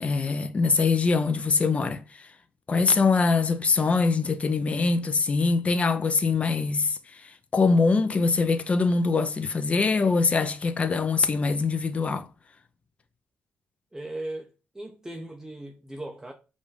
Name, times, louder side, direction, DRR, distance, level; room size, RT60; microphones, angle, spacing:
voice 1, 0.0-2.3 2.7-12.3, left 4 dB, 35° left, 0.6 m, -23 dB
voice 2, 13.9-16.3, right 1 dB, 10° right, 0.6 m, -38 dB
5.2 x 2.6 x 3.4 m
cardioid pair, 80°, 4 cm